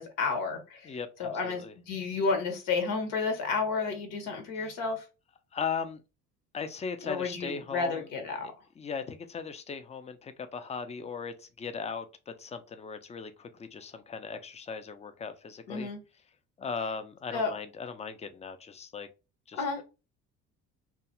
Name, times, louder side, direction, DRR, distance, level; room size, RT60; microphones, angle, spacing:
voice 1, 0.0-5.0 7.0-8.5 15.7-16.0 17.3-17.5 19.5-19.8, left 4 dB, 80° left, 1.0 m, -31 dB
voice 2, 0.8-1.7 4.6-4.8 5.5-6.0 6.5-8.1 8.4-15.9 16.6-19.1 19.5-19.8, left 5 dB, 20° left, 0.4 m, -38 dB
2.4 x 2.3 x 2.9 m
supercardioid pair, 80°, 33 cm